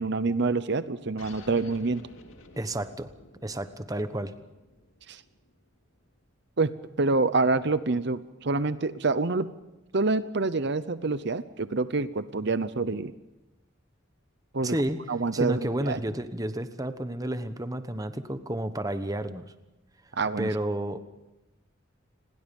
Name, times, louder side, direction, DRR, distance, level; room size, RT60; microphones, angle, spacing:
voice 1, 0.0-2.0 5.1-5.2 6.6-6.7 7.0-9.5 9.9-13.1 14.5-14.8 15.1-16.0 20.2-20.5, right 3 dB, 60° right, 14 dB, 0.8 m, -27 dB
sound 1, 1.2-6.2, left 2 dB, 90° left, 2.5 m, -52 dB
voice 2, 2.6-3.1 3.4-4.3 14.6-15.0 15.3-19.5 20.4-21.0, right 1 dB, 20° right, 10 dB, 1.1 m, -31 dB
29.0 x 21.5 x 5.4 m, 1.0 s
head